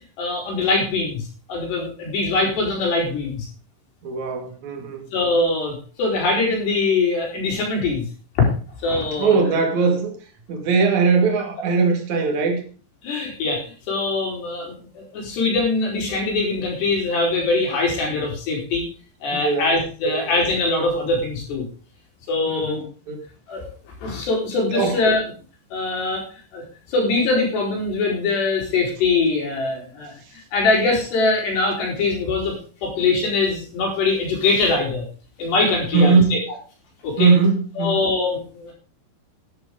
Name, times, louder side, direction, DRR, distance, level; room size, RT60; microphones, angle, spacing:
voice 1, 0.2-3.5 5.1-8.0 8.4-8.5 8.8-9.5 13.0-18.9 19.2-21.6 22.3-22.8 23.5-23.7 24.0-25.2 25.7-26.2 26.5-26.6 26.9-35.0 35.4-36.4 37.0-37.3 37.8-38.7, left 3 dB, 80° left, -1 dB, 6.5 m, -22 dB
voice 2, 4.0-5.1 9.2-10.1 10.5-12.6 19.3-19.7 20.0-20.2 22.5-22.8 23.1-23.2 24.7-24.9 35.9-36.3 37.2-38.0, right 4 dB, 50° right, 3 dB, 3.3 m, -20 dB
11.0 x 11.0 x 5.1 m, 0.39 s
omnidirectional pair, 4.8 m